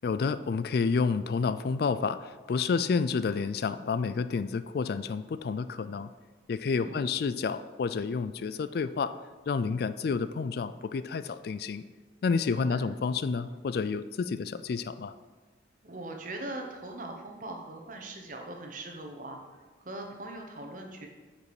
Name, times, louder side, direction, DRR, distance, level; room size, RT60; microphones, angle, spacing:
voice 1, 0.0-6.1 6.5-9.1 9.5-11.8 12.2-15.1, left 5 dB, 55° left, 13 dB, 0.3 m, -30 dB
voice 2, 15.8-19.4 19.8-21.1, right 2 dB, 45° right, 2 dB, 1.1 m, -41 dB
9.3 x 5.1 x 4.8 m, 1.3 s
head